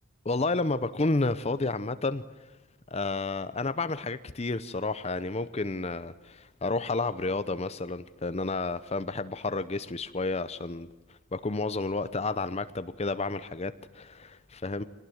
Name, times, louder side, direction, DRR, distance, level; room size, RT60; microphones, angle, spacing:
voice 1, 0.2-2.2 2.9-10.9 11.3-14.8, left 3 dB, 30° left, 13 dB, 0.7 m, -31 dB
25.0 x 19.0 x 7.9 m, 1.1 s
head